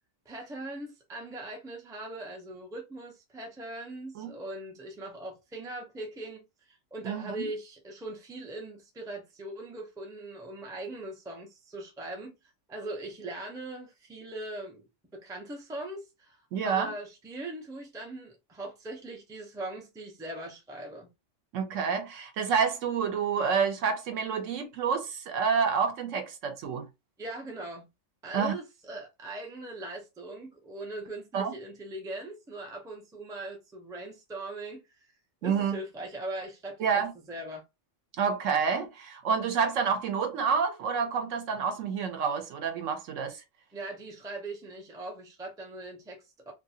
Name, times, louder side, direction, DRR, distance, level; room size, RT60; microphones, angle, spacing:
voice 1, 0.3-12.3 12.7-14.8 15.1-16.4 16.6-21.1 27.2-27.9 28.2-35.0 35.4-37.0 37.3-37.6 43.7-46.5, right 2 dB, 5° right, 0.4 m, -40 dB
voice 2, 7.0-7.5 16.5-16.9 21.5-26.9 28.3-28.5 31.3-31.5 35.4-35.8 36.8-37.1 38.2-43.4, right 6 dB, 80° right, 1.0 m, -28 dB
2.7 x 2.5 x 2.7 m
omnidirectional pair, 1.3 m